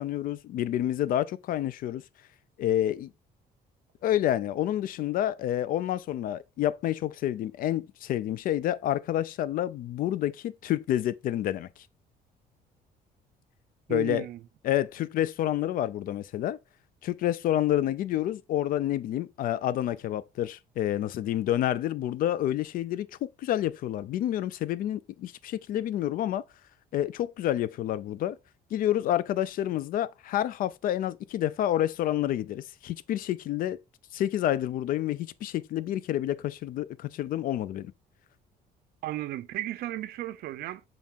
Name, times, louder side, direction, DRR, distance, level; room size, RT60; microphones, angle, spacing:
voice 1, 0.0-2.0 2.6-3.1 4.0-11.7 13.9-14.3 14.6-16.6 17.0-26.4 26.9-28.4 28.7-33.8 34.1-37.9, left 12 dB, 60° left, 0.4 m, -28 dB
voice 2, 13.9-14.4 39.0-40.8, right 14 dB, 65° right, 0.4 m, -34 dB
5.8 x 2.4 x 3.6 m
cardioid pair, 110°, 17 cm